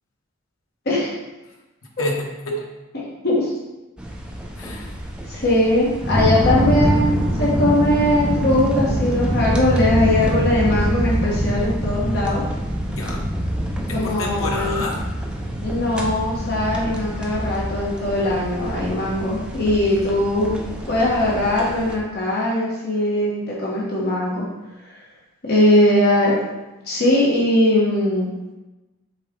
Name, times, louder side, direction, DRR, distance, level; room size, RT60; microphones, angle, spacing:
voice 1, 2.0-2.6 4.6-5.0 12.9-13.3 13.9-15.0, left 2 dB, 80° left, -1 dB, 1.3 m, -30 dB
voice 2, 2.9-3.5 5.3-12.4 13.9-14.8 15.6-20.6 20.9-24.4 24.8-25.0 25.4-26.3 26.8-28.3, left 1 dB, 50° left, -5 dB, 1.3 m, -20 dB
sound 1, 4.0-22.0, equal, 5° right, 0.7 m, -25 dB
7.2 x 4.2 x 3.8 m, 1.1 s
head